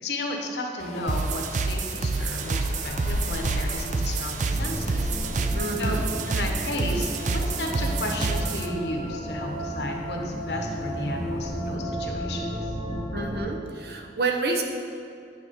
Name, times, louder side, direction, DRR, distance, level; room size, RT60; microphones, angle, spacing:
voice 1, 0.0-5.2 5.8-6.0 6.3-12.7, left 1 dB, 75° left, 2 dB, 1.0 m, -33 dB
sound 1, 0.8-11.8, left 2 dB, 40° left, 0.4 m, -40 dB
sound 2, 1.1-8.7, right 3 dB, 45° right, 0.4 m, -28 dB
sound 3, 4.5-13.4, equal, 5° right, 1.2 m, -33 dB
voice 2, 5.5-6.0 13.1-14.6, right 3 dB, 60° right, 2 dB, 0.8 m, -28 dB
9.6 x 5.9 x 3.7 m, 2.7 s
head